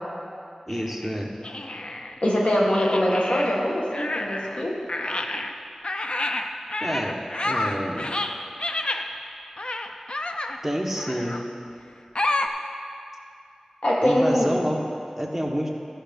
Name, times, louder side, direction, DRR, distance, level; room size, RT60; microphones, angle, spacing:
sound 1, 0.7-2.2 2.7-4.6 4.9-9.1 9.6-10.6 11.0-11.5 12.2-12.5, left 2 dB, 50° left, 0.5 m, -29 dB
voice 1, 0.7-1.3 6.8-7.2 7.4-8.1 10.6-11.4 14.0-14.8 15.2-15.7, equal, 10° right, -1 dB, 1.3 m, -28 dB
voice 2, 2.2-4.8 13.8-14.5, equal, 70° left, -3 dB, 1.8 m, -22 dB
13.0 x 5.8 x 5.3 m, 2.5 s
wide cardioid pair, 50°, 2 cm